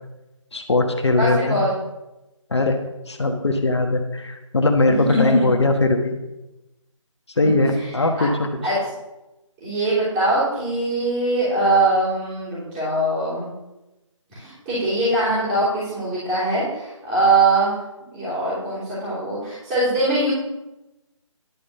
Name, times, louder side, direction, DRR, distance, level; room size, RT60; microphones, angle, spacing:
voice 1, 0.5-1.6 2.5-2.8 3.1-6.2 7.4-8.5, left 2 dB, 55° left, 5 dB, 1.2 m, -20 dB
voice 2, 1.2-1.7 4.8-5.4 7.4-7.9 8.1-8.2 8.6-8.8 9.6-13.5 14.3-17.7 18.1-20.3, right 2 dB, 15° right, -13 dB, 3.5 m, -22 dB
11.0 x 5.2 x 6.8 m, 1.0 s
figure-of-eight pair, 155°, 17 cm